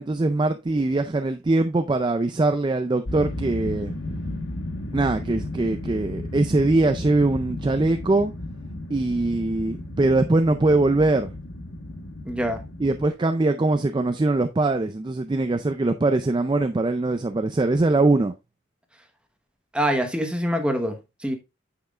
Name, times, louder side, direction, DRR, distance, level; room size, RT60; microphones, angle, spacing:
voice 1, 0.0-3.9 4.9-8.3 8.9-11.3 12.8-18.3, right 2 dB, 20° right, 0.3 m, -22 dB
sound 1, 3.0-13.1, left 1 dB, 70° left, 1.1 m, -34 dB
voice 2, 12.3-12.6 19.7-21.4, equal, 5° right, 1.0 m, -25 dB
8.6 x 5.8 x 2.4 m
head